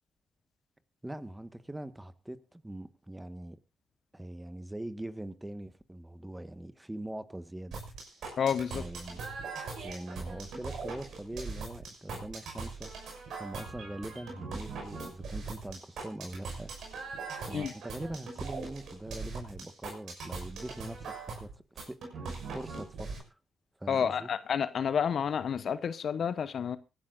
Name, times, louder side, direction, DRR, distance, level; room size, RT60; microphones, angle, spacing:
voice 1, 1.0-3.6 4.1-7.8 8.7-9.2 9.8-12.9 13.4-16.7 17.4-22.3 22.5-23.3 23.8-24.3, right 1 dB, 15° right, 1.6 m, -42 dB
sound 1, 7.7-23.2, right 4 dB, 70° right, 6.1 m, -41 dB
voice 2, 8.4-8.8 17.5-17.7 23.9-26.8, left 7 dB, 60° left, 0.9 m, -30 dB
24.5 x 11.5 x 2.6 m
hypercardioid pair, 45°, 0 cm